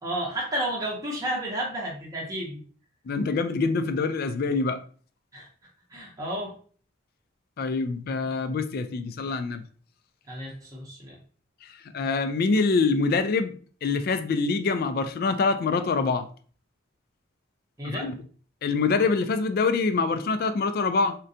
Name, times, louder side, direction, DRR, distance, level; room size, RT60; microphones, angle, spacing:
voice 1, 0.0-2.6 5.3-5.5 5.9-6.5 10.3-11.2 17.8-18.1, right 1 dB, 15° right, -3 dB, 0.7 m, -32 dB
voice 2, 3.1-4.8 7.6-9.6 11.9-13.6 13.8-16.3 17.8-18.2 18.6-21.2, left 4 dB, 50° left, 9 dB, 0.3 m, -25 dB
3.7 x 2.2 x 2.6 m, 0.43 s
head